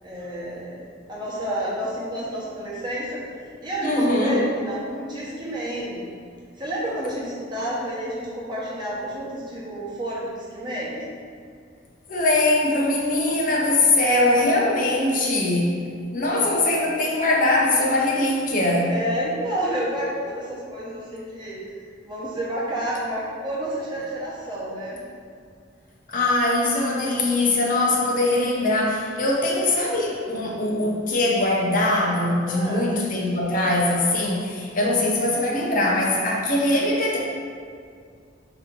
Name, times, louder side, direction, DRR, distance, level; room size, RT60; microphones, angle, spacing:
voice 1, 0.0-0.8 1.1-3.2 3.6-6.0 6.6-11.0 17.3-17.4 18.9-25.0 32.4-32.9, right 1 dB, 25° right, -7 dB, 0.9 m, -30 dB
voice 2, 3.8-4.5 12.1-15.7 16.1-18.9 26.1-37.2, left 2 dB, 45° left, -3 dB, 0.6 m, -21 dB
4.8 x 3.0 x 3.5 m, 2.2 s
head